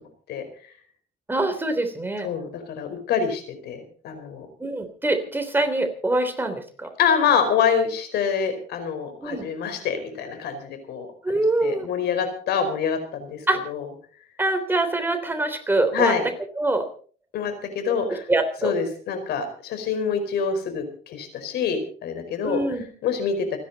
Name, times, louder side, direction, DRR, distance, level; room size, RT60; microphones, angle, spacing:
voice 1, 0.3-0.7 2.2-4.5 7.0-13.9 15.9-16.2 17.3-18.2 18.6-22.6 23.0-23.6, left 6 dB, 75° left, 8 dB, 4.7 m, -26 dB
voice 2, 1.3-2.3 4.6-6.9 9.2-9.4 11.2-11.9 13.5-13.6 14.4-16.1 16.6-16.9 18.3-18.7 22.4-22.8, right 2 dB, 10° right, 7 dB, 3.4 m, -24 dB
29.0 x 10.5 x 4.1 m, 0.43 s
cardioid pair, 110°, 17 cm